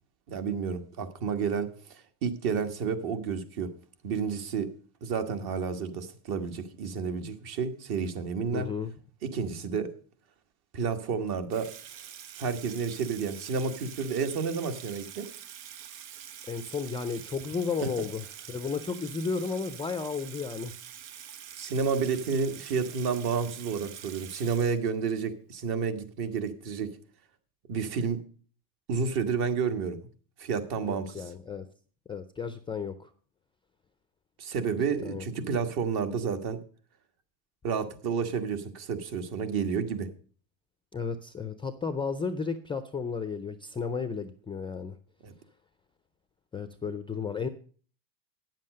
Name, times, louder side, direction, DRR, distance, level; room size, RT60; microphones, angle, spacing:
voice 1, 0.3-3.7 4.0-4.7 5.0-8.7 9.2-9.9 10.7-11.7 12.4-15.3 17.8-18.1 21.6-26.9 27.7-28.2 28.9-30.0 30.4-31.2 34.4-36.6 37.6-40.1 45.2-45.3, right 5 dB, 50° right, 8 dB, 1.6 m, -30 dB
voice 2, 8.5-8.9 16.5-20.7 30.8-31.7 32.1-33.1 35.0-35.3 40.9-45.0 46.5-47.5, left 5 dB, 10° left, 10 dB, 0.4 m, -33 dB
Water tap faucet / Sink (filling or washing), 11.5-25.2, right 9 dB, 85° right, 1.1 m, -46 dB
9.2 x 7.5 x 6.5 m, 0.43 s
supercardioid pair, 115°, 48 cm